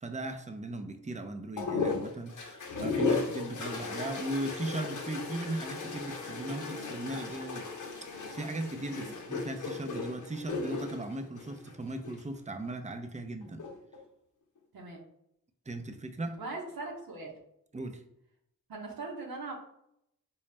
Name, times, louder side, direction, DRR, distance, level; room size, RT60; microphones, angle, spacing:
voice 1, 0.0-7.7 8.3-13.6 15.7-16.4 17.7-18.0, right 2 dB, 20° right, 7 dB, 0.6 m, -38 dB
sound 1, 1.6-12.2 13.4-14.0, left 4 dB, 55° left, 0.8 m, -36 dB
voice 2, 16.4-17.3 18.7-19.5, right 3 dB, 75° right, -2 dB, 0.9 m, -40 dB
4.0 x 2.3 x 3.3 m, 0.75 s
cardioid pair, 40°, 37 cm